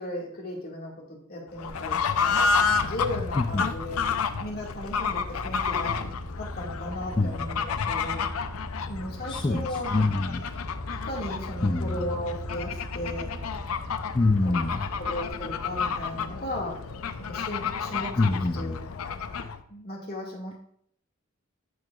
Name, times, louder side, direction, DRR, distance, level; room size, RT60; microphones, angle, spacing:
voice 1, 0.0-4.0 4.4-6.0 6.4-8.2 8.9-9.9 10.9-13.3 14.4-16.8 17.3-18.2 18.5-19.1 19.7-20.6, left 1 dB, 45° left, -2 dB, 1.9 m, -36 dB
Fowl / Bird, 1.6-19.6, left 5 dB, 80° left, 0.5 m, -30 dB
sound 1, 1.7-15.3, equal, 70° right, 3.2 m, -41 dB
voice 2, 9.3-10.4 11.6-12.0 14.1-14.9 18.2-18.7, left 2 dB, 25° left, 3 dB, 0.4 m, -25 dB
12.5 x 4.7 x 2.4 m, 0.67 s
head